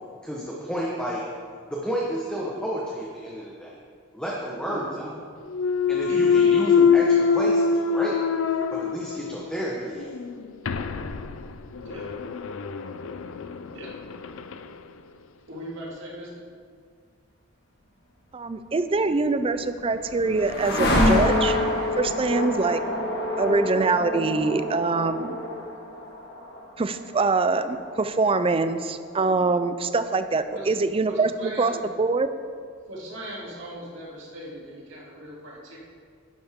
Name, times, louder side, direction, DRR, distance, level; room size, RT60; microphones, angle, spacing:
voice 1, 0.2-1.2 1.7-3.8 4.1-5.1 5.9-8.1 8.7-10.1, equal, 5° left, -5 dB, 1.1 m, -31 dB
voice 2, 4.7-5.1 6.1-6.2 11.8-12.0 13.7-13.9 15.5-16.3 30.5-30.7 31.1-31.8 32.9-35.8, equal, 60° right, -5 dB, 2.8 m, -39 dB
Thump thud, 5.5-9.5 10.0-14.7, left 6 dB, 75° left, 0.5 m, -24 dB
voice 3, 18.3-21.6 22.0-22.8 23.4-25.4 26.8-32.3, right 3 dB, 25° right, 11 dB, 0.4 m, -24 dB
sound 1, 19.3-29.4, left 1 dB, 55° left, 1.7 m, -27 dB
11.5 x 10.5 x 3.7 m, 2.1 s
head